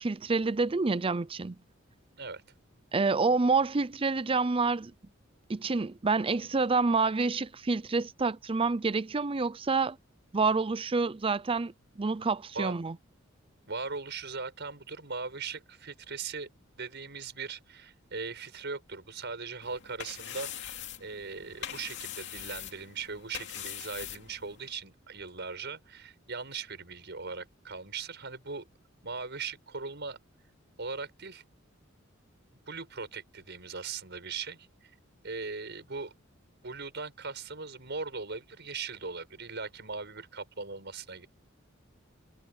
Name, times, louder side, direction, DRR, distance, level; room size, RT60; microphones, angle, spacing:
voice 1, 0.0-1.6 2.9-4.9 5.5-10.0 10.3-11.7 12.0-13.0, right 4 dB, 25° right, 0.5 m, -28 dB
voice 2, 13.7-16.5 16.8-20.7 21.0-28.7 29.0-30.2 30.8-31.4 32.7-34.9 35.2-36.1 36.6-41.3, right 4 dB, 60° right, 6.4 m, -39 dB
sound 1, 19.6-24.7, left 10 dB, 60° left, 2.6 m, -42 dB
head